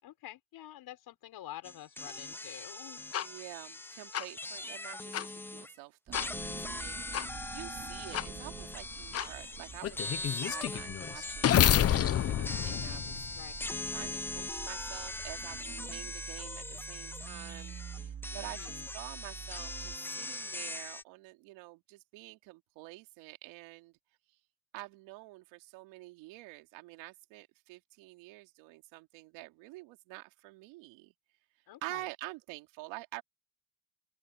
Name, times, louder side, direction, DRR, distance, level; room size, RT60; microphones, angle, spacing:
voice 1, 0.0-3.2 13.3-13.7 18.3-18.9 31.7-32.1, left 13 dB, 50° left, 5.2 m, -48 dB
sound 1, 1.6-5.7 6.1-21.0, left 2 dB, 5° left, 0.5 m, -41 dB
sound 2, 3.1-3.3 4.1-4.2 5.1-5.3 6.1-6.3 7.1-7.3 8.1-8.3 9.1-9.3 9.8-13.7, left 11 dB, 30° left, 0.9 m, -29 dB
voice 2, 3.2-7.0 7.3-13.2 13.9-24.0 24.7-31.1 31.8-33.2, right 21 dB, 80° right, 2.7 m, -48 dB
sound 3, 6.1-20.0, right 8 dB, 35° right, 3.7 m, -48 dB
open air
cardioid pair, 130°, 45 cm